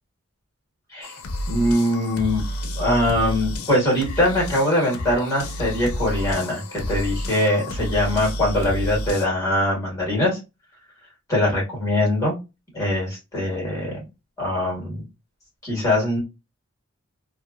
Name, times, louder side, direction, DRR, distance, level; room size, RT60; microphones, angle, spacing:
sound 1, 1.0-9.3, equal, 85° left, 0.5 m, -30 dB
voice 1, 1.5-2.4 2.8-10.4 11.3-12.3 12.7-14.0 14.4-15.0 15.6-16.2, left 1 dB, 15° left, -3 dB, 1.6 m, -22 dB
2.8 x 2.4 x 2.4 m, 0.25 s
head